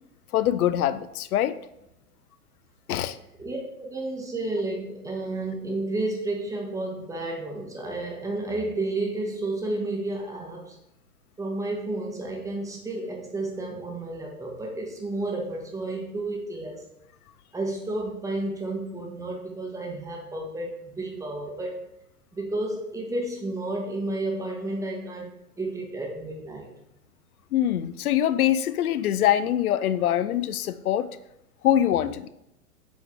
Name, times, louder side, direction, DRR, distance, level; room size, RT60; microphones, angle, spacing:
voice 1, 0.3-1.6 2.9-3.2 27.5-31.1 31.6-32.3, left 11 dB, 70° left, 14 dB, 0.5 m, -24 dB
voice 2, 3.4-10.8 11.4-16.8 17.5-21.9 22.3-25.3 25.6-26.7, right 2 dB, 5° right, 0 dB, 0.9 m, -31 dB
7.6 x 3.7 x 3.6 m, 0.83 s
figure-of-eight pair, 110°, 47 cm